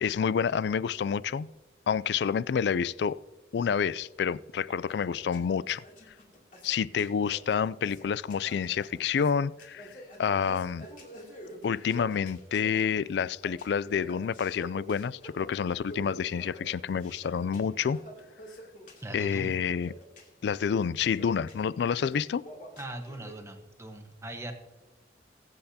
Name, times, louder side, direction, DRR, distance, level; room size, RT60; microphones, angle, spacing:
voice 1, 0.0-1.5 1.9-3.2 3.5-5.8 6.6-9.9 10.2-10.9 11.6-18.0 19.1-19.9 20.4-22.4, left 7 dB, 65° left, 0.3 m, -28 dB
sound 1, 4.9-23.3, equal, 45° left, 2.7 m, -48 dB
voice 2, 19.0-19.5 22.8-24.5, right 1 dB, 15° right, 1.1 m, -40 dB
22.0 x 8.0 x 2.8 m
head